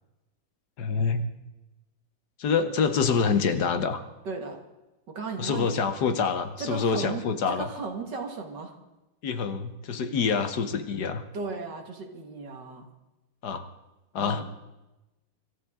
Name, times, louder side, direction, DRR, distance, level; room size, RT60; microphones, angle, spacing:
voice 1, 0.8-1.2 2.4-4.0 5.4-7.7 9.2-11.2 13.4-13.7 14.1-14.4, left 5 dB, 60° left, 9 dB, 1.5 m, -26 dB
voice 2, 4.2-4.6 5.1-5.9 6.6-8.7 11.3-12.9 14.2-14.4, right 4 dB, 60° right, 3 dB, 2.4 m, -35 dB
25.5 x 13.0 x 3.7 m, 1.0 s
omnidirectional pair, 2.1 m